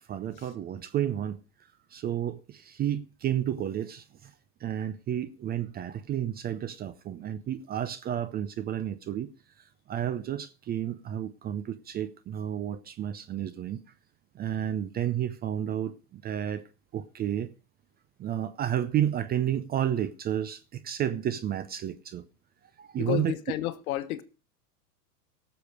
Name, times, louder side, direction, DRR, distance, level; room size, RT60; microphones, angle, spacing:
voice 1, 0.1-1.4 1.9-4.0 4.6-9.3 9.9-13.8 14.4-16.6 16.9-17.5 18.2-22.2 22.8-23.3, right 10 dB, 20° right, 0.5 m, -31 dB
voice 2, 23.0-24.2, left 15 dB, 60° left, 1.4 m, -31 dB
17.5 x 7.0 x 4.9 m
hypercardioid pair, 110°, 49 cm